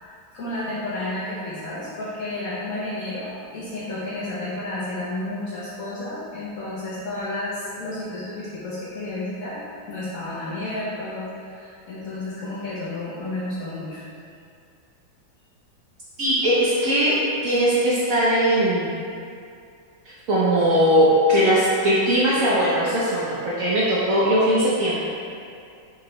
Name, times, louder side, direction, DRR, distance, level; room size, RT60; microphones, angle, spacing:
voice 1, 0.0-14.0, left 2 dB, 65° left, -7 dB, 0.8 m, -31 dB
voice 2, 16.2-17.2 17.4-18.9 20.3-25.0, equal, 65° right, -8 dB, 0.9 m, -19 dB
5.4 x 2.9 x 2.9 m, 2.4 s
omnidirectional pair, 2.0 m